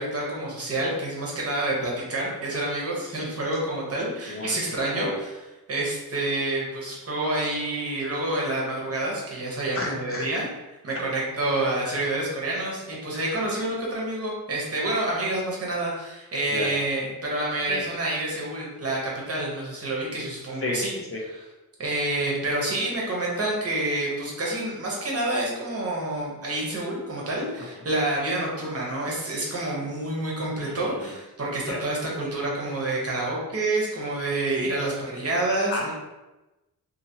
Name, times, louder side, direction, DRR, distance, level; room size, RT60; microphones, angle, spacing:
voice 1, 0.0-5.1 5.7-10.4 10.8-20.9 21.8-35.9, right 2 dB, 40° right, -4 dB, 0.8 m, -28 dB
voice 2, 4.3-5.2 9.7-10.4 13.1-13.4 16.5-16.7 17.7-17.8 20.6-21.2 30.6-31.1 31.6-31.8 34.6-34.7 35.7-35.9, left 2 dB, 40° left, -2 dB, 0.4 m, -33 dB
2.7 x 2.7 x 2.7 m, 1.1 s
wide cardioid pair, 150°, 36 cm